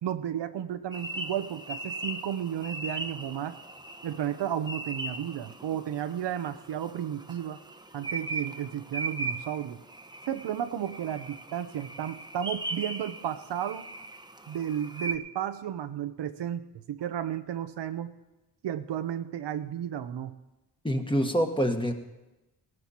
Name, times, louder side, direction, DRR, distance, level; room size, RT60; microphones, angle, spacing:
voice 1, 0.0-3.6 4.0-7.6 7.9-9.8 10.3-13.9 14.5-18.1 18.6-20.3, right 10 dB, 85° right, 10 dB, 0.8 m, -33 dB
sound 1, 0.9-15.2, right 2 dB, 10° right, 0.9 m, -39 dB
voice 2, 20.8-21.9, equal, 10° left, 4 dB, 1.6 m, -26 dB
17.0 x 12.0 x 4.3 m, 1.0 s
cardioid pair, 65°, 41 cm